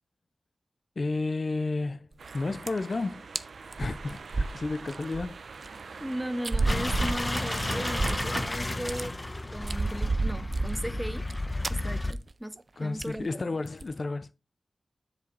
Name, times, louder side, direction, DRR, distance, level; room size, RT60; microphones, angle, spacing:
voice 1, 1.0-2.1 2.3-3.2 3.8-5.4 12.8-14.3, left 3 dB, 50° left, 0.5 m, -31 dB
sound 1, 2.1-2.4 2.6-2.9 3.3-3.4 3.7-5.2 5.6-5.7 6.4-8.5 8.7-9.0 9.5-11.3 11.6-11.8 12.1-12.3 12.6-12.7 13.0-13.2 13.7-13.9, right 3 dB, 50° right, 0.6 m, -31 dB
sound 2, 2.2-8.5, right 4 dB, 80° right, 0.8 m, -43 dB
voice 2, 6.0-9.2 9.5-11.3 11.7-13.4, equal, 5° right, 0.7 m, -36 dB
sound 3, 6.7-12.1, left 2 dB, 25° left, 1.0 m, -32 dB
7.6 x 6.1 x 3.9 m
wide cardioid pair, 65°, 0 cm